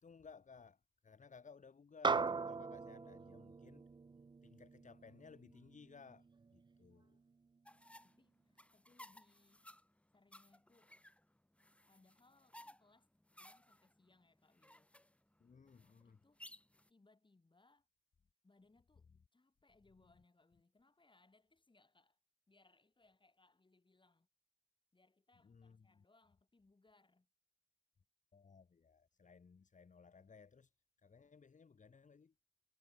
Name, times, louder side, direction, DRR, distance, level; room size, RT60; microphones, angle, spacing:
voice 1, 0.0-3.9 4.4-6.3 6.5-7.2 15.4-16.2 19.9-20.1 25.4-26.0 28.3-30.7 31.0-32.3, left 5 dB, 65° left, 1.1 m, -60 dB
sound 1, 2.0-6.7, right 4 dB, 35° right, 0.4 m, -40 dB
sound 2, 7.6-16.9, left 1 dB, 10° left, 1.5 m, -61 dB
voice 2, 8.0-9.7 10.1-11.0 11.9-13.1 13.4-14.9 16.0-16.4 16.9-17.9 18.4-22.2 22.5-24.3 24.9-27.3, left 3 dB, 35° left, 3.4 m, -72 dB
wide cardioid pair, 75°, 14 cm